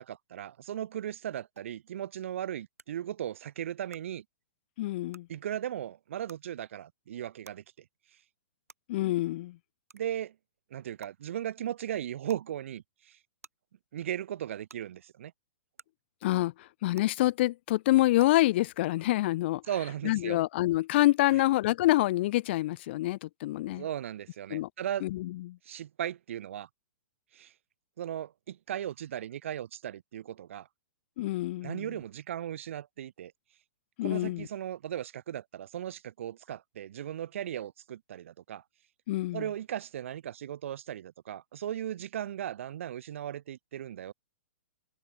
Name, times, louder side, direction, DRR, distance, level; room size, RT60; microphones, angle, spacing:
voice 1, 0.0-4.2 5.3-7.6 9.9-10.3 10.7-13.2 13.9-15.3 19.7-20.4 23.7-25.1 25.6-26.7 27.3-27.5 28.0-30.7 31.6-33.3 34.0-38.6 39.3-44.1, right 10 dB, 60° right, 0.6 m, -37 dB
sound 1, 1.6-1.7 2.8-2.9 3.9-4.0 5.1-5.2 6.3-6.4 7.4-7.5 8.7-8.8 9.9-10.0 11.0-11.1 12.3-12.4 13.4-13.5 14.7-14.8 15.8-15.9 16.9-17.0 18.2-18.3, right 5 dB, 80° right, 5.4 m, -50 dB
voice 2, 4.8-5.3 8.9-9.6 16.2-16.5 16.8-19.6 20.0-23.8 24.5-24.7 25.0-25.6 31.2-31.9 34.0-34.5 39.1-39.4, left 16 dB, 50° left, 0.5 m, -27 dB
hypercardioid pair, 115°, 8 cm